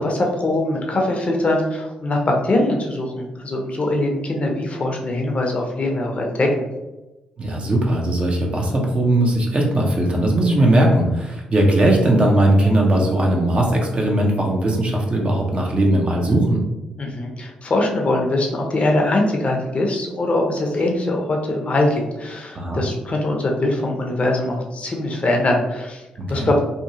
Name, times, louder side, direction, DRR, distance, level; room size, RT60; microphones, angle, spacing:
voice 1, 0.0-6.7 17.0-26.0 26.3-26.6, left 1 dB, 40° left, 1 dB, 0.6 m, -22 dB
voice 2, 7.4-16.6 22.5-22.8 26.2-26.5, right 1 dB, 35° right, -1 dB, 0.7 m, -18 dB
2.7 x 2.3 x 2.8 m, 1.1 s
hypercardioid pair, 40°, 3 cm